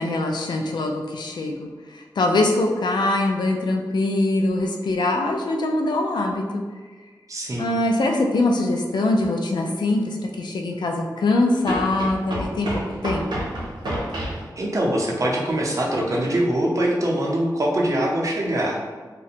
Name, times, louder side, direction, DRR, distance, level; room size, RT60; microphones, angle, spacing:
voice 1, 0.0-6.6 7.6-12.7 13.0-13.5, left 2 dB, 80° left, 2 dB, 0.3 m, -23 dB
voice 2, 7.3-7.8 14.6-19.0, right 1 dB, 45° right, -3 dB, 0.6 m, -23 dB
sound 1, 9.2-9.3 11.6-14.5, right 1 dB, 85° right, 0.7 m, -30 dB
2.4 x 2.1 x 2.8 m, 1.4 s
wide cardioid pair, 65°, 7 cm